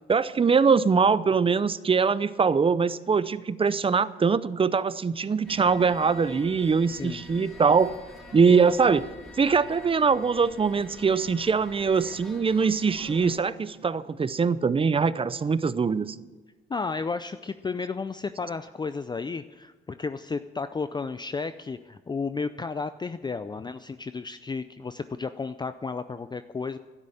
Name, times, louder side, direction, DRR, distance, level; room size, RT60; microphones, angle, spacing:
voice 1, 0.1-7.9 8.3-9.0 9.4-16.1, right 5 dB, 25° right, 16 dB, 0.6 m, -22 dB
sound 1, 5.4-13.4, left 2 dB, ahead, 3.1 m, -47 dB
voice 2, 16.7-26.8, left 4 dB, 20° left, 11 dB, 0.5 m, -33 dB
12.0 x 9.9 x 8.5 m, 1.3 s
cardioid pair, 90°, 20 cm